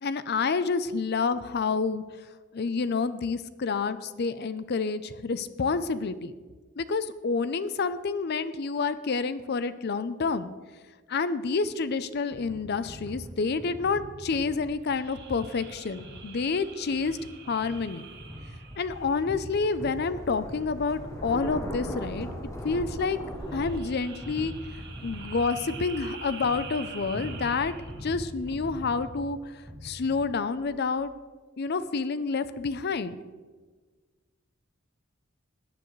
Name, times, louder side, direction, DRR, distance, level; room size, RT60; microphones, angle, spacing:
voice 1, 0.0-2.0 2.5-6.3 6.8-10.5 11.1-17.2 17.5-18.1 18.8-22.3 22.6-23.2 23.5-24.5 25.0-27.7 28.0-31.1 31.6-33.2, left 4 dB, 55° left, 14 dB, 0.5 m, -28 dB
sound 1, 12.3-30.7, equal, ahead, 1.9 m, -43 dB
sound 2, 14.8-19.6 23.4-28.2, right 6 dB, 60° right, 1.5 m, -46 dB
Thunder, 18.8-23.8, equal, 15° left, 1.3 m, -38 dB
17.0 x 10.0 x 3.2 m, 1.4 s
head